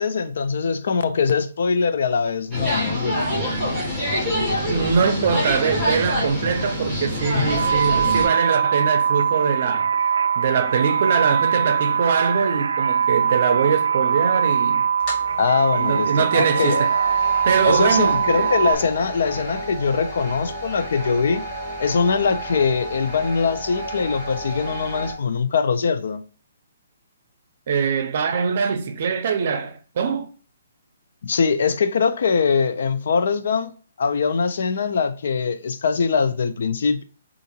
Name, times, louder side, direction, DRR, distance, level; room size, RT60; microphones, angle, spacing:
voice 1, 0.0-3.2 7.4-7.5 15.4-16.9 17.6-21.4 21.8-26.2 31.2-33.7 34.0-37.0, left 5 dB, 65° left, 0.4 m, -22 dB
sound 1, 2.5-8.3, equal, 5° left, 1.6 m, -25 dB
voice 2, 4.7-9.9 10.4-14.8 15.8-16.9 17.4-18.5 27.7-30.3, right 6 dB, 45° right, 0.6 m, -22 dB
sound 2, 7.5-18.7, right 7 dB, 90° right, 0.3 m, -22 dB
sound 3, 15.0-25.1, right 1 dB, 25° left, 1.2 m, -33 dB
3.6 x 2.5 x 2.8 m
hypercardioid pair, 165°, 0 cm